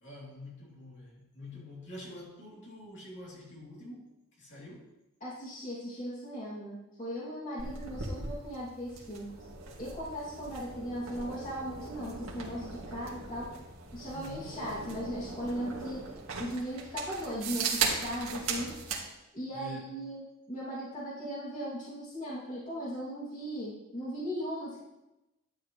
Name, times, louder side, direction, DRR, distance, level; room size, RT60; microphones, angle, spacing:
voice 1, 0.0-4.9 14.1-14.5 19.5-19.9, left 1 dB, 55° left, -4 dB, 3.2 m, -47 dB
voice 2, 5.2-9.3 9.8-13.5 13.9-16.0 16.4-18.8 19.3-24.8, equal, 35° left, -8 dB, 2.6 m, -38 dB
sound 1, 7.6-19.0, right 4 dB, 75° right, 1.8 m, -38 dB
11.5 x 9.0 x 3.2 m, 0.96 s
head